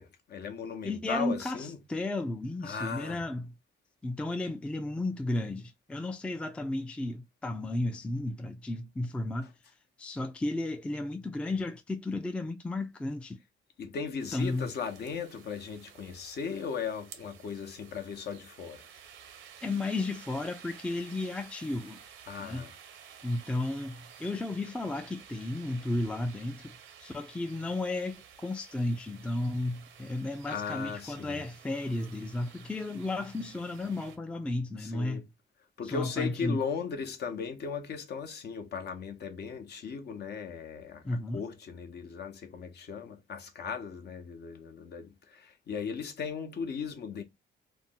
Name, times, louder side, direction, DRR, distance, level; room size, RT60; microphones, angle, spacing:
voice 1, 0.0-1.8 2.6-3.2 13.8-18.9 22.3-22.7 30.4-31.5 34.8-35.2 35.8-47.2, left 6 dB, 55° left, 0.7 m, -37 dB
voice 2, 0.8-3.5 4.0-9.5 10.0-13.4 14.3-14.7 19.6-22.0 22.4-22.7 23.2-28.2 28.4-35.3 35.8-36.6 41.0-41.4, left 2 dB, 5° left, 0.3 m, -33 dB
sound 1, 14.2-34.2, right 8 dB, 85° right, 0.7 m, -53 dB
2.5 x 2.0 x 3.6 m
cardioid pair, 90°, 20 cm